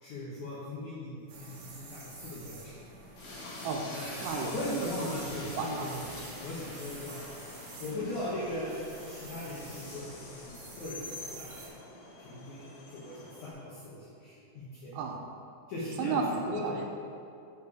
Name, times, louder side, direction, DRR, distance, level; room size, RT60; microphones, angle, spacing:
voice 1, 0.0-2.8 3.9-7.2 7.8-8.8 9.1-11.7 12.2-14.9 15.7-16.2 16.5-16.8, left 1 dB, 90° left, -8 dB, 1.7 m, -39 dB
sound 1, 1.3-11.7, right 2 dB, 70° right, 1.9 m, -48 dB
Train, 3.2-13.5, left 2 dB, 70° left, 2.6 m, -46 dB
voice 2, 4.2-4.9 5.6-5.9 14.9-15.3 16.0-16.9, right 4 dB, 85° right, 2 dB, 2.6 m, -33 dB
6.9 x 4.8 x 4.9 m, 2.6 s
omnidirectional pair, 5.0 m